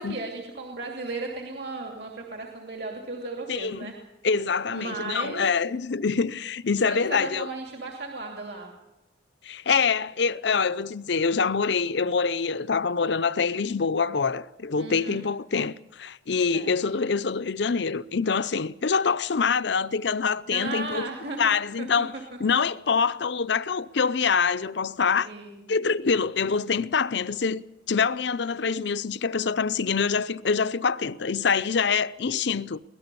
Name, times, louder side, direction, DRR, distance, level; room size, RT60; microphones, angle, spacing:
voice 1, 0.0-3.9 4.7-5.4 6.8-8.7 14.7-15.2 16.5-16.7 20.5-21.5 21.8-22.2 25.2-25.7, right 3 dB, 60° right, 2.6 m, -35 dB
voice 2, 3.5-3.9 4.2-7.5 9.4-21.1 21.4-22.1 22.4-25.3 25.7-27.6 27.9-32.8, left 5 dB, 65° left, 0.6 m, -25 dB
23.5 x 17.5 x 6.9 m
head